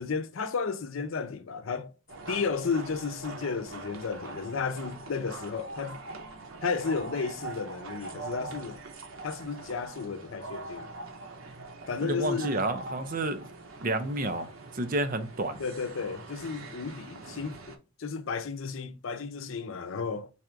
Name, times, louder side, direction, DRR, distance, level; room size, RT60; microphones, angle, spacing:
voice 1, 0.0-1.9 2.3-6.0 6.6-8.8 9.2-10.9 11.9-12.6 15.6-20.3, left 5 dB, 80° left, 0.6 m, -33 dB
sound 1, 2.1-17.8, right 3 dB, 90° right, 0.8 m, -43 dB
voice 2, 12.0-13.4 13.8-14.5 14.7-15.6, right 2 dB, 45° right, 0.5 m, -30 dB
4.1 x 2.5 x 4.4 m
head